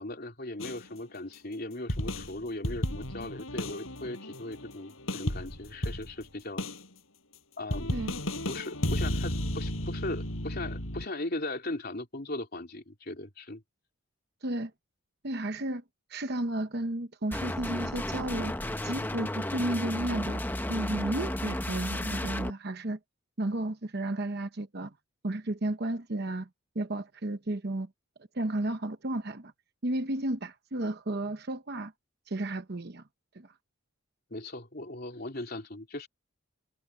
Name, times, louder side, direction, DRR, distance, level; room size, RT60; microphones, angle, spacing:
voice 1, 0.0-6.7 7.6-8.0 8.5-13.6 34.3-36.1, left 2 dB, 45° left, 3.5 m, -38 dB
sound 1, 0.6-0.9 1.3-1.4 1.9-6.3 6.6-6.9 7.3-7.4 7.7-11.1, left 1 dB, 75° left, 7.9 m, -34 dB
voice 2, 15.2-15.8 16.1-18.5 18.8-20.4 20.7-23.0 23.4-24.9 25.2-26.5 26.7-27.9 28.3-29.5 29.8-31.9 32.3-33.0 33.3-33.5, right 1 dB, 50° right, 1.0 m, -33 dB
sound 2, 17.3-22.5, left 1 dB, 10° left, 0.8 m, -33 dB
head